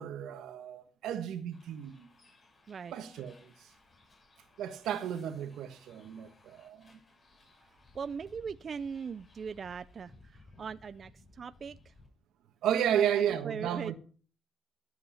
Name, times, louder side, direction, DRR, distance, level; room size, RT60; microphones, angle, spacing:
voice 1, 0.0-2.1 2.9-3.5 4.6-7.0 12.6-13.9, right 9 dB, 85° right, 1.5 m, -33 dB
Bus, 1.5-12.1, left 3 dB, 40° left, 7.2 m, -60 dB
voice 2, 7.7-11.9 12.9-13.9, right 6 dB, 45° right, 0.5 m, -40 dB
14.0 x 8.0 x 5.7 m
cardioid pair, 90°, 0 cm